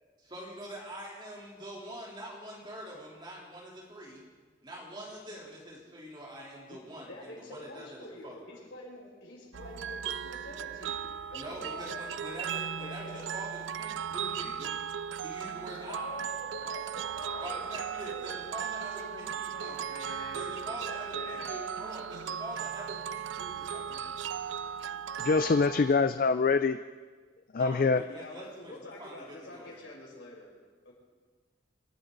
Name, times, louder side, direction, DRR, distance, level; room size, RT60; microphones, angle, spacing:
voice 1, 0.2-4.2 4.6-8.6 11.3-14.8 15.2-16.2 17.4-19.9 20.3-24.3 27.6-29.8, equal, 25° right, -3 dB, 3.4 m, -45 dB
voice 2, 6.6-11.0 11.3-12.0 12.8-13.4 15.9-17.6 18.0-18.5 18.8-20.4 20.8-21.6 28.0-30.5 30.8-30.9, left 2 dB, 90° left, -4 dB, 6.3 m, -46 dB
sound 1, 9.5-25.9, right 8 dB, 75° right, 0.4 m, -37 dB
voice 3, 25.2-26.8 27.5-28.0, left 4 dB, 45° left, 11 dB, 0.4 m, -24 dB
26.5 x 12.5 x 3.9 m, 1.5 s
head